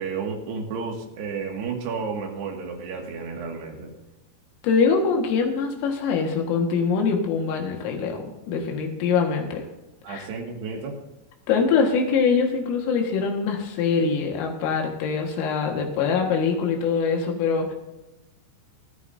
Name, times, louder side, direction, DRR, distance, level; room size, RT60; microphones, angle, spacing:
voice 1, 0.0-3.9 10.0-11.0, right 5 dB, 65° right, 1 dB, 3.7 m, -32 dB
voice 2, 4.6-9.7 10.1-10.3 11.5-17.7, left 5 dB, 90° left, 1 dB, 4.3 m, -23 dB
29.0 x 9.8 x 2.7 m, 1.0 s
omnidirectional pair, 5.8 m